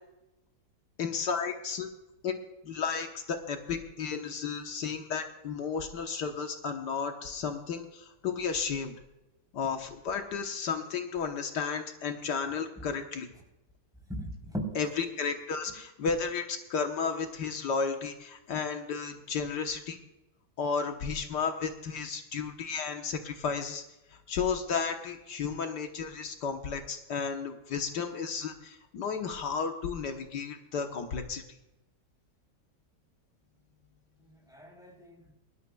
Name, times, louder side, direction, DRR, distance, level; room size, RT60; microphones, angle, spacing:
voice 1, 1.0-1.9 2.2-2.3 2.6-8.9 9.5-13.3 14.8-20.0 20.6-23.8 24.1-31.4, left 5 dB, 75° left, 4 dB, 1.7 m, -33 dB
voice 2, 14.1-14.7 34.2-35.3, equal, ahead, 0 dB, 3.7 m, -39 dB
23.5 x 12.5 x 2.3 m, 0.97 s
omnidirectional pair, 1.8 m